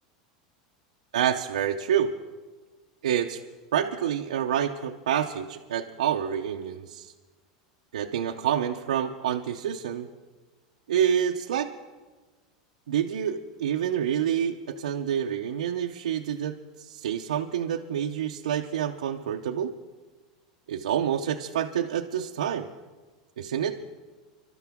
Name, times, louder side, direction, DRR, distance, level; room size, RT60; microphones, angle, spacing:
voice 1, 1.1-2.1 3.0-3.4 3.7-7.1 7.9-10.1 10.9-11.7 12.9-19.7 20.7-22.7 23.4-23.8, right 9 dB, 85° right, 2 dB, 0.7 m, -28 dB
25.5 x 12.5 x 3.6 m, 1.3 s
hypercardioid pair, 105°, 4 cm